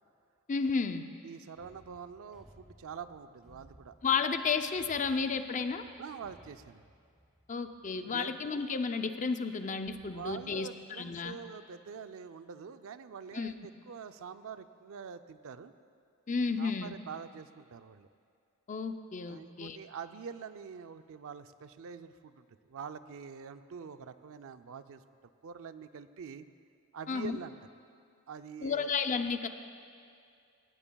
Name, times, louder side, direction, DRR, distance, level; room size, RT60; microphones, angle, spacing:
voice 1, 0.5-1.0 4.0-5.8 7.5-10.7 11.0-11.4 13.3-13.5 16.3-16.9 18.7-19.8 27.1-27.4 28.6-29.5, left 5 dB, 35° left, 8 dB, 0.5 m, -32 dB
voice 2, 1.2-3.9 6.0-6.9 7.9-8.3 10.1-15.7 16.6-18.1 19.3-25.0 25.4-26.5 26.9-27.5 28.3-28.9, right 6 dB, 65° right, 11 dB, 0.5 m, -45 dB
sound 1, 1.5-8.5 9.0-9.1 9.6-10.3, equal, 5° right, 3.6 m, -61 dB
19.0 x 17.5 x 2.3 m, 2.4 s
head